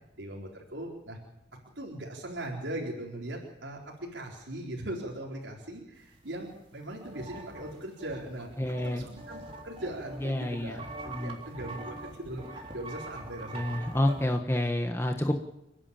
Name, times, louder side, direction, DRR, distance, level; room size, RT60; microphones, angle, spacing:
voice 1, 0.1-1.2 1.8-10.8 11.2-14.0, right 1 dB, 85° right, -2 dB, 4.3 m, -39 dB
sound 1, 6.5-6.6 6.8-14.4, right 2 dB, 30° right, 3.5 m, -43 dB
voice 2, 8.6-9.0 10.2-11.4 13.5-15.4, left 1 dB, 15° left, 3 dB, 1.2 m, -29 dB
30.0 x 11.0 x 8.8 m, 0.90 s
head